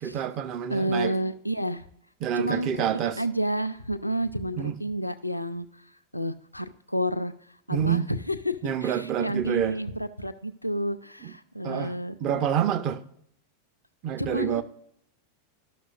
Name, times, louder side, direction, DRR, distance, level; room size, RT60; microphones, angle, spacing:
voice 1, 0.0-1.1 2.2-3.2 4.6-4.8 7.7-8.1 8.6-9.7 11.2-11.3 11.6-11.9 12.2-13.0 14.0-14.6, right 9 dB, 35° right, 0.6 m, -27 dB
voice 2, 0.7-1.8 2.4-5.7 6.1-7.3 7.7-12.2 14.2-14.6, equal, 90° left, 0.5 m, -30 dB
13.5 x 6.2 x 2.4 m
figure-of-eight pair, 90°, 0 cm